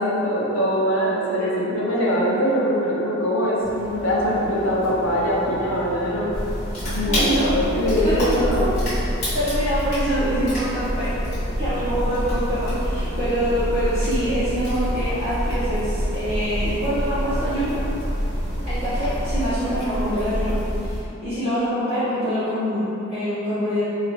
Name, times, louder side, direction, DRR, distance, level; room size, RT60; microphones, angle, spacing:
voice 1, 0.0-6.5 6.8-8.7, equal, 80° left, -5 dB, 0.7 m, -22 dB
sound 1, 3.6-19.5, right 1 dB, 5° right, 1.0 m, -38 dB
sound 2, 6.3-21.0, equal, 35° left, 1.4 m, -26 dB
voice 2, 7.1-7.5 8.0-8.1 9.3-11.2 11.6-17.8 18.6-20.5 20.8-21.0 21.2-23.8, equal, 30° right, -17 dB, 1.2 m, -25 dB
3.8 x 2.9 x 2.9 m, 3.0 s
head